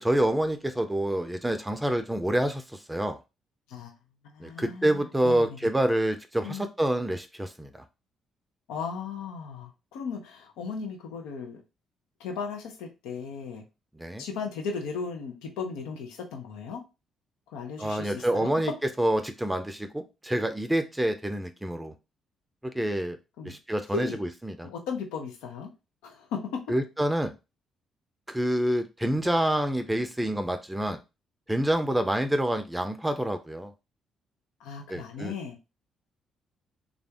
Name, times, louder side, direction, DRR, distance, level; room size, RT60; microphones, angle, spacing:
voice 1, 0.0-3.2 4.4-7.7 14.0-14.2 17.8-18.7 19.0-21.9 22.6-23.2 23.4-24.1 24.5-24.7 26.7-27.3 28.3-31.0 31.5-33.7 34.9-35.3, right 1 dB, 10° right, 8 dB, 0.5 m, -27 dB
voice 2, 4.2-5.6 6.4-6.7 8.7-11.6 12.2-13.6 14.2-16.8 17.5-18.5 23.4-23.6 23.9-24.2 24.6-25.7 26.0-26.7 34.6-35.6, left 5 dB, 75° left, 3 dB, 0.7 m, -36 dB
3.5 x 2.5 x 3.4 m, 0.26 s
hypercardioid pair, 45°, 0 cm